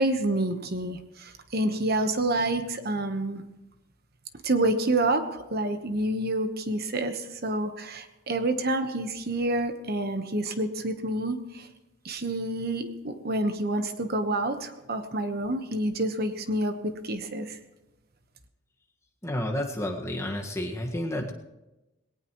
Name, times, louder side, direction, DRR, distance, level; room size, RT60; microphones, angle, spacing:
voice 1, 0.0-3.4 4.4-11.7 12.0-17.6, right 1 dB, 50° right, 8 dB, 1.2 m, -28 dB
voice 2, 19.2-21.3, left 1 dB, 15° left, 0 dB, 1.7 m, -30 dB
20.0 x 18.0 x 3.2 m, 0.99 s
head